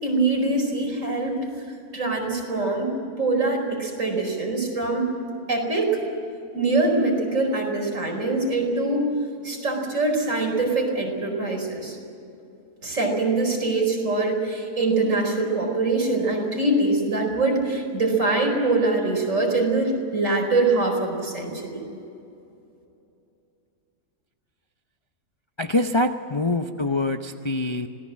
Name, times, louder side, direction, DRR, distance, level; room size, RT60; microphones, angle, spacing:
voice 1, 0.0-1.4 1.9-5.1 5.5-6.0 6.5-9.0 9.4-12.0 12.8-21.8, right 2 dB, 55° right, 1 dB, 5.1 m, -23 dB
voice 2, 25.6-27.9, left 2 dB, 25° left, 5 dB, 0.6 m, -24 dB
26.5 x 18.5 x 7.6 m, 2.7 s
omnidirectional pair, 1.6 m